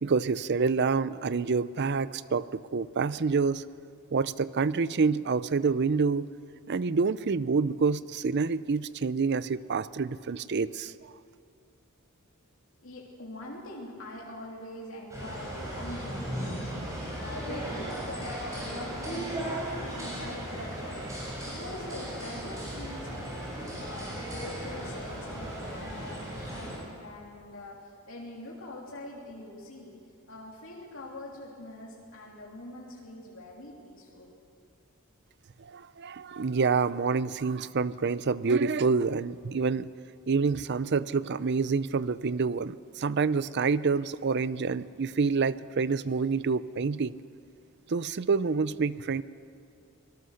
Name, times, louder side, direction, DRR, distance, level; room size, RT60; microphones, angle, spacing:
voice 1, 0.0-3.6 4.1-6.3 6.7-10.9 35.6-39.9 40.3-47.2 47.9-49.2, right 4 dB, 50° right, 17 dB, 0.5 m, -27 dB
voice 2, 12.8-23.5 23.8-30.0 30.3-34.3, left 1 dB, 65° left, -3 dB, 3.2 m, -43 dB
sound 1, 15.1-26.8, right 1 dB, 15° right, 6.8 m, -36 dB
24.0 x 19.5 x 6.5 m, 2.5 s
head